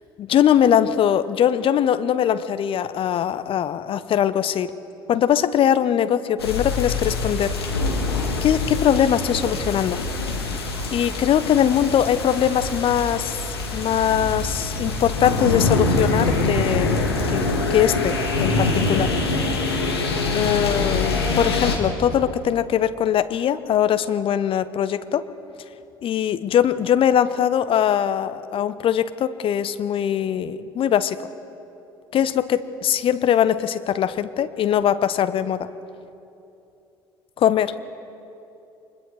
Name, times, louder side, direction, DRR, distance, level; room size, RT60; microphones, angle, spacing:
voice 1, 0.2-4.7 5.1-7.6 8.4-10.0 10.9-19.1 20.3-25.3 26.0-31.3 32.1-35.7 37.4-37.7, left 9 dB, 45° left, 13 dB, 1.0 m, -21 dB
sound 1, 6.4-21.8, left 3 dB, 80° left, 2.5 m, -24 dB
29.5 x 25.0 x 4.9 m, 2.8 s
figure-of-eight pair, 55°, 13 cm